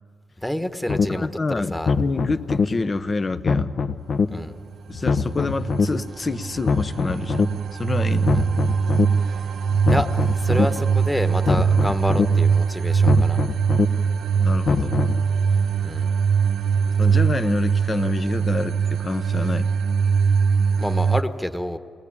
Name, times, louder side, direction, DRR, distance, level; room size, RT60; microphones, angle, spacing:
voice 1, 0.4-1.3 1.7-1.9 4.3-4.6 8.3-8.5 9.1-9.5 9.9-13.4 15.8-16.1 20.8-21.8, left 1 dB, 5° left, 8 dB, 1.4 m, -28 dB
sound 1, 0.9-1.0 1.7-2.6 3.3-4.2 4.9-5.8 6.5-7.4 8.1-9.0 9.7-10.6 11.3-12.2 12.9-13.8 14.5-15.2, left 5 dB, 60° left, 1.3 m, -23 dB
voice 2, 1.1-3.7 4.9-8.3 14.3-15.0 17.0-19.7, left 3 dB, 35° left, 9 dB, 1.0 m, -27 dB
sound 2, 4.9-21.2, right 6 dB, 70° right, 0.6 m, -22 dB
27.0 x 19.5 x 8.8 m, 2.3 s
cardioid pair, 75°, 0 cm